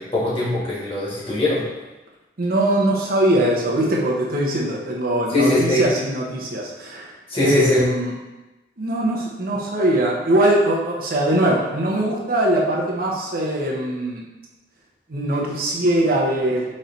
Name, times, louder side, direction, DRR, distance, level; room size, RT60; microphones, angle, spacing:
voice 1, 0.0-1.6 5.3-5.8 7.3-7.9, left 2 dB, 30° left, -8 dB, 1.5 m, -21 dB
voice 2, 2.4-7.1 7.4-8.1 8.8-14.2 15.1-16.7, right 1 dB, 50° right, -2 dB, 0.7 m, -21 dB
4.1 x 3.1 x 3.9 m, 1.1 s
head